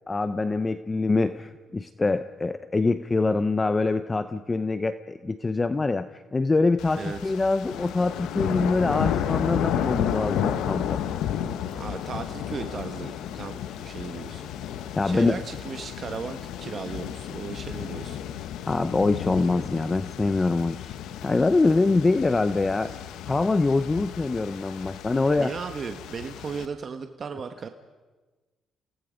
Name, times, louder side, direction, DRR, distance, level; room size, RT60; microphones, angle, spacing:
voice 1, 0.1-11.0 15.0-15.4 18.7-20.9 21.2-22.9 23.3-25.5, left 3 dB, 25° left, 12 dB, 0.7 m, -24 dB
sound 1, 6.8-26.7, left 10 dB, 85° left, 1.0 m, -32 dB
voice 2, 7.0-7.3 11.7-13.6 13.8-14.4 15.0-18.2 25.4-27.7, right 5 dB, 45° right, 7 dB, 1.3 m, -36 dB
29.5 x 18.0 x 5.2 m, 1.3 s
cardioid pair, 90°, 0 cm